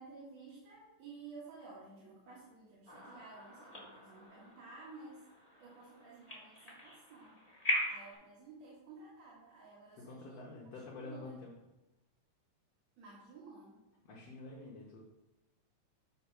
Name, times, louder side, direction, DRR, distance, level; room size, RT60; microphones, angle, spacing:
voice 1, 0.0-5.3 5.6-7.4 7.9-10.4 10.9-11.4 13.0-13.8, right 3 dB, 60° right, -6 dB, 2.3 m, -53 dB
sound 1, 2.9-8.1, equal, 25° left, 0.7 m, -41 dB
voice 2, 10.1-11.5 14.1-15.0, left 3 dB, 60° left, -3 dB, 1.9 m, -48 dB
7.5 x 4.3 x 5.6 m, 0.99 s
omnidirectional pair, 3.8 m